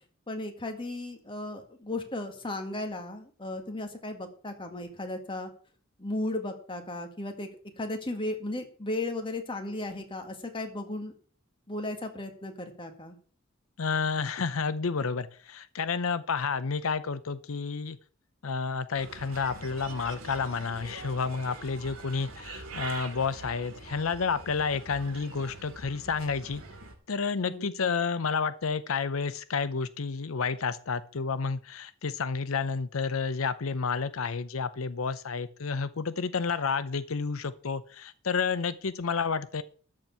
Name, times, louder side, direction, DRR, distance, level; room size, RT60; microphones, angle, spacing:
voice 1, 0.3-5.5 6.0-7.5 7.8-11.1 11.7-13.2 27.5-27.7, left 2 dB, 25° left, 4 dB, 2.0 m, -35 dB
voice 2, 13.8-18.0 18.4-26.6 27.1-39.6, left 5 dB, 85° left, 14 dB, 0.7 m, -30 dB
Bird, 18.9-26.9, right 3 dB, 85° right, 2.4 m, -44 dB
13.5 x 4.6 x 8.6 m, 0.43 s
head